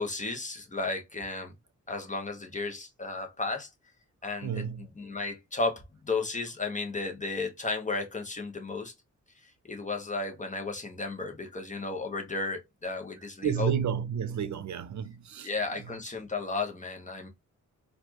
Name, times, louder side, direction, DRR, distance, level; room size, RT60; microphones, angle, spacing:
voice 1, 0.0-1.5 1.9-3.7 4.2-8.9 9.6-13.7 15.4-17.3, left 3 dB, 25° left, 1.2 m, -34 dB
voice 2, 4.4-4.9 13.4-15.5, right 8 dB, 70° right, 0.6 m, -31 dB
4.3 x 2.7 x 2.9 m
cardioid pair, 85°, 30 cm